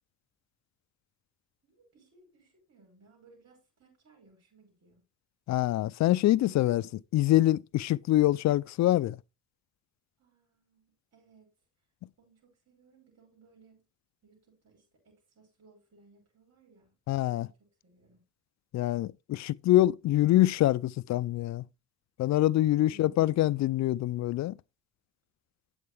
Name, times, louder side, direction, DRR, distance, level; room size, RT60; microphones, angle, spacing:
voice 1, 1.6-5.0 10.2-11.5 12.2-13.8 14.2-18.2 22.7-23.6, right 4 dB, 55° right, 6.2 m, -61 dB
voice 2, 5.5-9.2 17.1-17.5 18.7-21.6 22.2-24.5, left 15 dB, 65° left, 0.5 m, -25 dB
9.5 x 7.9 x 3.4 m
cardioid pair, 90°, 30 cm